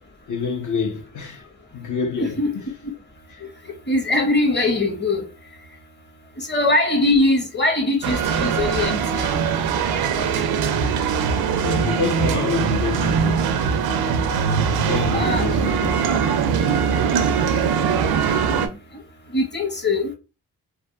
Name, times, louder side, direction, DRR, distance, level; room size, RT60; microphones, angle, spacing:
voice 1, 0.3-1.5 1.7-2.7 11.6-13.5 14.6-16.0, left 5 dB, 50° left, 0.9 m, -27 dB
voice 2, 2.2-2.5 3.9-5.3 6.4-9.4 15.0-15.5 19.3-20.1, left 2 dB, 30° left, 1.1 m, -21 dB
sound 1, 8.0-18.7, right 6 dB, 75° right, 0.6 m, -21 dB
3.4 x 2.4 x 2.3 m
supercardioid pair, 45°, 38 cm